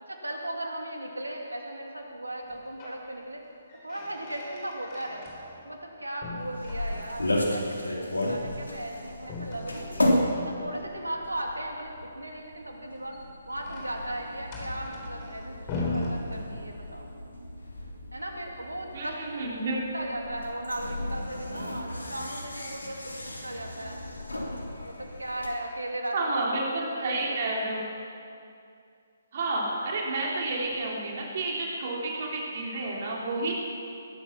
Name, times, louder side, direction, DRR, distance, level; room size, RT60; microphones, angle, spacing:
voice 1, 0.1-3.4 3.8-5.3 5.6-10.0 10.4-13.2 13.5-17.1 18.1-19.6 19.9-24.0 24.8-27.7, right 1 dB, 85° right, 1 dB, 2.7 m, -37 dB
sound 1, 2.4-3.1 3.4-5.9 6.2-7.4 9.2-10.8 12.8-17.0, left 2 dB, 30° left, 3.6 m, -39 dB
sound 2, 6.4-25.5, left 1 dB, 80° left, 3.0 m, -34 dB
voice 2, 18.9-19.8 26.1-27.8 29.3-33.5, right 2 dB, 45° right, -2 dB, 3.3 m, -30 dB
20.5 x 11.5 x 6.0 m, 2.4 s
figure-of-eight pair, 135°, 0 cm